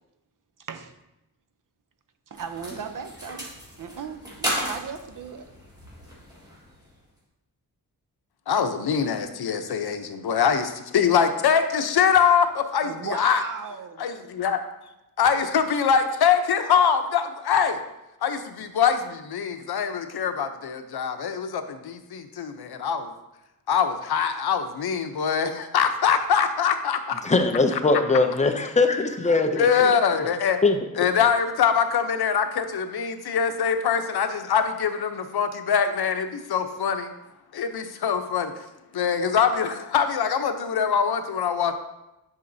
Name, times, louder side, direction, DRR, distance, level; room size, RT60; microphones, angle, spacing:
voice 1, 0.6-1.0 2.3-5.5 12.8-14.1, right 6 dB, 60° right, 9 dB, 0.6 m, -36 dB
sound 1, 2.3-7.1, equal, 10° right, 1.7 m, -35 dB
voice 2, 8.5-13.4 14.0-14.6 15.2-17.8 18.2-23.1 23.7-27.2 29.6-30.6 31.0-37.1 37.5-38.5 38.9-41.8, left 7 dB, 85° left, 8 dB, 0.7 m, -23 dB
voice 3, 27.2-29.9 30.6-30.8, left 3 dB, 20° left, 6 dB, 0.5 m, -21 dB
9.7 x 5.7 x 2.7 m, 0.94 s
wide cardioid pair, 170°, 37 cm